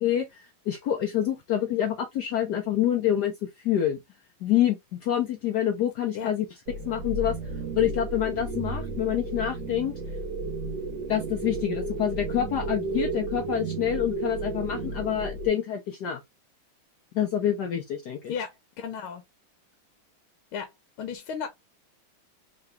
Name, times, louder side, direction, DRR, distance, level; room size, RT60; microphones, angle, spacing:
voice 1, 0.0-4.0 4.4-6.5 6.9-7.4 7.8-9.9 11.1-16.2 17.1-18.3, left 10 dB, 70° left, 1.0 m, -27 dB
sound 1, 6.7-15.5, right 2 dB, 65° right, 1.4 m, -33 dB
voice 2, 18.3-19.2 20.5-20.7 21.0-21.5, left 7 dB, 90° left, 1.6 m, -34 dB
3.8 x 3.0 x 3.3 m
omnidirectional pair, 2.2 m